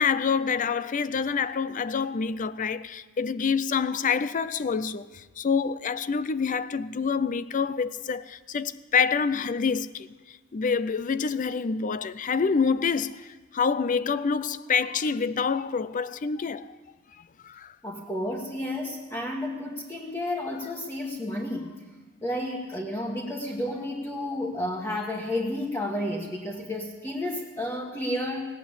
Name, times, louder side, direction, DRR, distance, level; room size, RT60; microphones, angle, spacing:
voice 1, 0.0-16.8 17.2-17.8, left 5 dB, 40° left, 0.4 m, -27 dB
voice 2, 17.8-21.7 22.2-28.5, left 1 dB, 15° left, 1.4 m, -31 dB
18.0 x 8.2 x 8.6 m
head